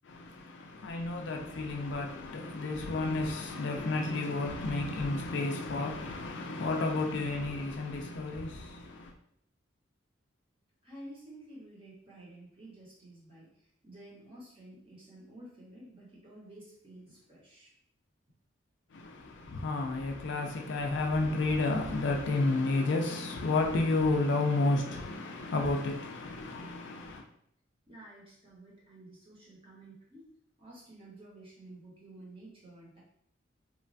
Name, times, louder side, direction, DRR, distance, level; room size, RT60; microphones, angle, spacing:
voice 1, 0.0-9.1 18.9-27.2, left 2 dB, 60° left, 0.3 m, -31 dB
voice 2, 10.8-17.7 27.9-30.3 30.6-33.0, right 1 dB, 25° right, 0.9 m, -51 dB
3.0 x 2.2 x 2.5 m
head